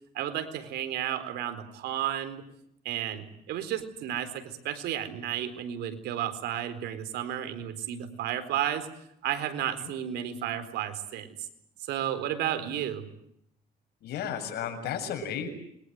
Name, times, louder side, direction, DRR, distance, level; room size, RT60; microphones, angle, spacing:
voice 1, 0.1-2.4 2.8-8.9 9.2-11.5 11.9-13.1, right 10 dB, 80° right, 10 dB, 4.2 m, -32 dB
voice 2, 14.0-15.5, left 8 dB, 75° left, 8 dB, 7.2 m, -34 dB
28.0 x 23.5 x 8.0 m, 0.76 s
cardioid pair, 110°, 17 cm